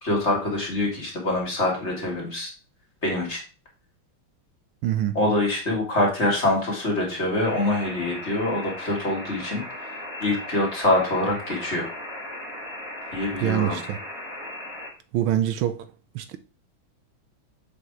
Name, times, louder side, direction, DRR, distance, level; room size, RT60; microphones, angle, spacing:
voice 1, 0.0-2.5 3.0-3.4 5.1-9.6 10.2-11.9 13.1-13.8, left 1 dB, 35° left, 2.2 m, -25 dB
voice 2, 4.8-5.2 13.4-14.0 15.1-15.9 16.1-16.4, right 11 dB, 80° right, 1.4 m, -25 dB
sound 1, 7.4-14.9, left 1 dB, 5° left, 2.0 m, -37 dB
6.9 x 4.1 x 4.6 m
omnidirectional pair, 2.3 m